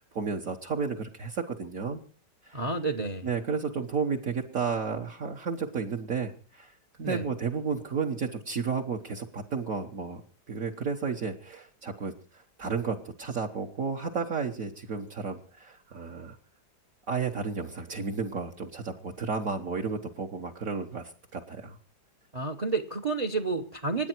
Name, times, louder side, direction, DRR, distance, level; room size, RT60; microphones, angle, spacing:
voice 1, 0.1-2.0 2.4-2.6 3.2-6.7 7.0-10.2 10.5-16.4 17.1-21.8, right 5 dB, 50° right, 1 dB, 1.6 m, -32 dB
voice 2, 2.5-3.3 7.0-7.2 22.3-24.1, right 3 dB, 30° right, 10 dB, 0.7 m, -30 dB
26.0 x 9.9 x 4.5 m, 0.36 s
omnidirectional pair, 1.9 m